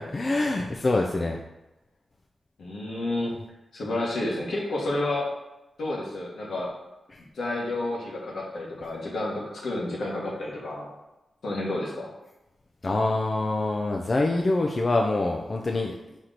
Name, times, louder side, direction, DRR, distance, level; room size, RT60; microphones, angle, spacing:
voice 1, 0.0-1.4 7.1-7.2 12.8-15.9, left 2 dB, 45° left, 1 dB, 0.4 m, -25 dB
voice 2, 2.6-3.3 3.7-5.3 5.8-6.7 7.3-10.9 11.4-12.1, left 2 dB, 80° left, -4 dB, 1.3 m, -30 dB
4.4 x 3.0 x 3.8 m, 0.98 s
cardioid pair, 50°, 0 cm